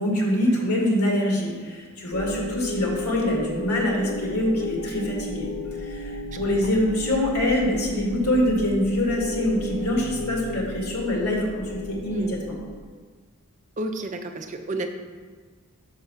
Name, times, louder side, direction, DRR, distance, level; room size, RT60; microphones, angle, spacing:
voice 1, 0.0-5.5 5.8-12.5, left 1 dB, 90° left, -1 dB, 2.1 m, -24 dB
sound 1, 2.1-12.8, left 1 dB, 65° left, 0.6 m, -33 dB
voice 2, 6.3-6.7 12.1-12.4 13.8-14.9, right 2 dB, 35° right, 6 dB, 0.5 m, -32 dB
5.6 x 5.5 x 6.3 m, 1.5 s
head